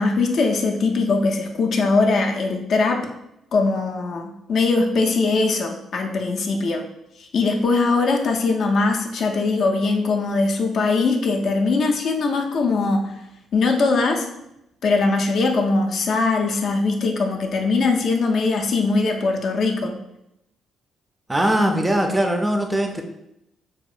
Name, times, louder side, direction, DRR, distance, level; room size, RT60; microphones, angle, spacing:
voice 1, 0.0-3.1 3.5-6.8 7.2-13.1 13.5-14.3 14.8-19.9, left 3 dB, 60° left, 2 dB, 0.4 m, -21 dB
voice 2, 21.3-23.0, right 1 dB, 15° right, 4 dB, 0.3 m, -20 dB
2.7 x 2.1 x 2.4 m, 0.83 s
cardioid pair, 90°, 0 cm